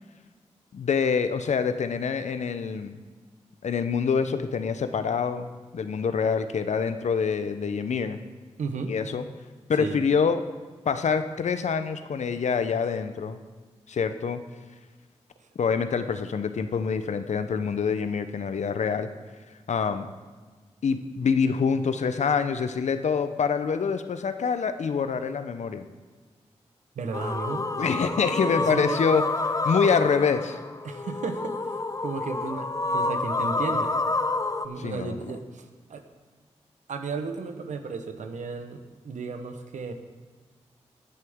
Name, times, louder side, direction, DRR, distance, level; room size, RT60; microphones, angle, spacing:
voice 1, 0.7-3.0 3.6-8.2 8.9-9.2 9.7-10.4 10.9-13.4 13.9-14.4 15.6-19.1 19.7-20.1 20.8-25.8 27.8-29.2 29.6-30.6 34.8-35.2, left 6 dB, 75° left, 10 dB, 0.7 m, -26 dB
voice 2, 8.6-8.9 9.8-10.0 15.4-15.5 26.9-27.7 28.3-29.0 30.8-31.5 32.0-34.0 34.6-36.0 36.9-39.9, right 4 dB, 85° right, 7 dB, 0.9 m, -34 dB
sound 1, 27.1-34.7, left 3 dB, 30° left, 0.6 m, -28 dB
18.5 x 6.6 x 3.6 m, 1.4 s
cardioid pair, 45°, 12 cm